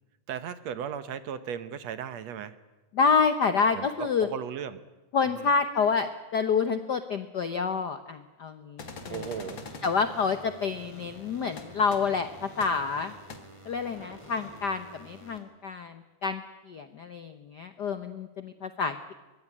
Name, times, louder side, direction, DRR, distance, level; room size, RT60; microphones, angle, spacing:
voice 1, 0.3-2.6 3.7-4.8 5.3-5.5 9.1-9.6, right 8 dB, 65° right, 14 dB, 2.1 m, -36 dB
voice 2, 2.9-4.3 5.1-9.3 9.8-13.1 13.6-19.1, left 5 dB, 90° left, 10 dB, 0.9 m, -28 dB
sound 1, 8.8-9.9 11.6-11.7 11.9-12.0 12.6-12.7 13.3-13.4, left 4 dB, 40° left, 2.6 m, -42 dB
sound 2, 8.8-15.4, equal, 10° right, 3.8 m, -49 dB
23.5 x 20.5 x 9.9 m, 1.2 s
omnidirectional pair, 3.4 m